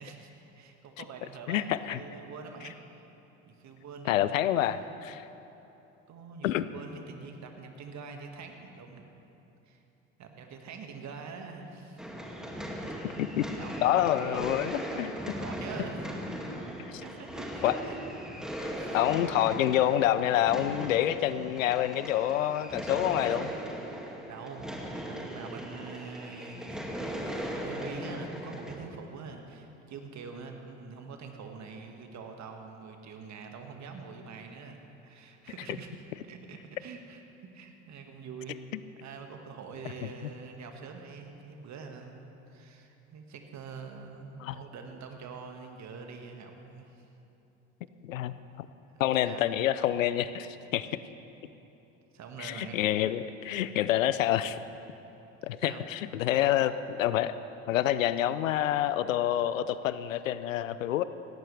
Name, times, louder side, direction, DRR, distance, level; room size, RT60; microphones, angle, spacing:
voice 1, 0.0-2.8 3.5-4.8 6.1-9.0 9.6-9.8 10.2-12.1 13.6-14.5 15.4-16.1 17.0-18.0 18.8-19.0 24.3-35.9 36.2-37.2 37.5-38.6 39.0-47.1 48.9-49.6 52.1-52.8 55.6-55.8, right 5 dB, 45° right, 4 dB, 1.9 m, -45 dB
voice 2, 1.5-2.0 4.1-5.2 6.4-6.7 13.2-13.5 13.8-15.4 17.6-17.7 18.6-23.5 44.4-44.6 48.0-48.7 49.0-50.9 52.4-54.6 55.4-57.3 57.7-61.0, left 12 dB, 80° left, 14 dB, 0.6 m, -27 dB
sound 1, 12.0-28.7, equal, ahead, 2.2 m, -38 dB
17.5 x 17.0 x 3.4 m, 3.0 s
hypercardioid pair, 65°, 39 cm